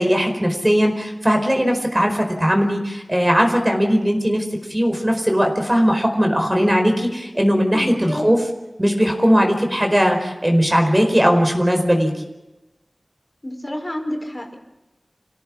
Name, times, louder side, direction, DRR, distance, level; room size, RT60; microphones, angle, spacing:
voice 1, 0.0-4.4 4.7-8.4 8.8-12.1, equal, 20° right, 3 dB, 4.7 m, -18 dB
voice 2, 7.7-8.2 13.4-14.6, left 1 dB, 30° left, 3 dB, 4.9 m, -29 dB
28.0 x 17.0 x 7.4 m, 1.0 s
wide cardioid pair, 60°, 0 cm